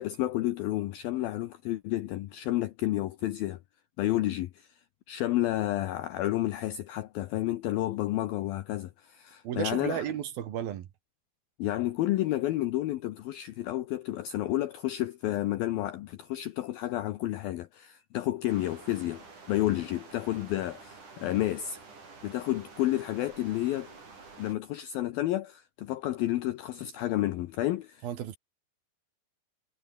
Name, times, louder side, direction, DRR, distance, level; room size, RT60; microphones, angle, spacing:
voice 1, 0.0-3.6 4.0-4.7 5.1-10.0 11.6-21.8 22.2-23.9 24.4-28.1, left 15 dB, 75° left, 2.2 m, -30 dB
voice 2, 9.4-10.9 28.0-28.4, right 10 dB, 60° right, 3.0 m, -33 dB
sound 1, 18.5-24.5, right 4 dB, 40° right, 7.6 m, -50 dB
omnidirectional pair, 5.3 m